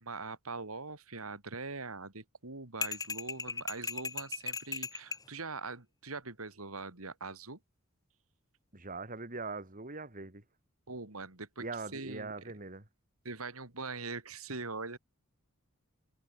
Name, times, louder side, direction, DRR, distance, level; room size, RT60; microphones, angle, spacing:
voice 1, 0.0-7.6 10.9-11.6 11.9-12.3 13.3-15.0, right 3 dB, 80° right, 3.4 m, -42 dB
sound 1, 2.8-5.3, left 4 dB, 15° left, 0.9 m, -37 dB
voice 2, 8.7-10.4 11.6-12.9, right 3 dB, 40° right, 2.9 m, -41 dB
head